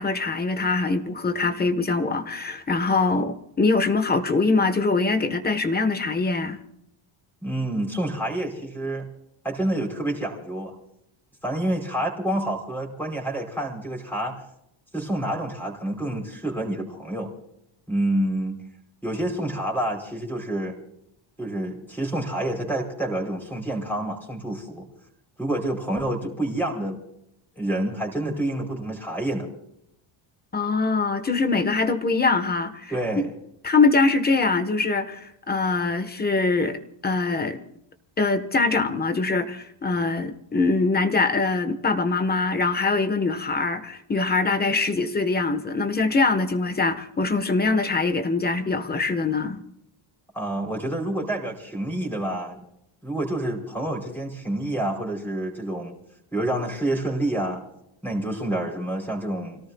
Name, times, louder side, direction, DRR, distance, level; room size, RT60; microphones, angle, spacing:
voice 1, 0.0-6.6 30.5-33.3 33.6-37.6 38.2-49.6, left 3 dB, 20° left, 9 dB, 1.3 m, -23 dB
voice 2, 7.4-9.1 9.4-10.7 11.4-14.4 14.9-17.3 17.9-18.6 19.0-20.8 21.4-24.9 25.4-27.0 27.5-29.5 32.9-33.3 50.3-52.6 53.0-55.9 56.3-57.6 58.0-59.6, right 1 dB, 5° left, 0 dB, 5.0 m, -28 dB
30.0 x 18.0 x 2.4 m, 0.76 s
cardioid pair, 160°, 49 cm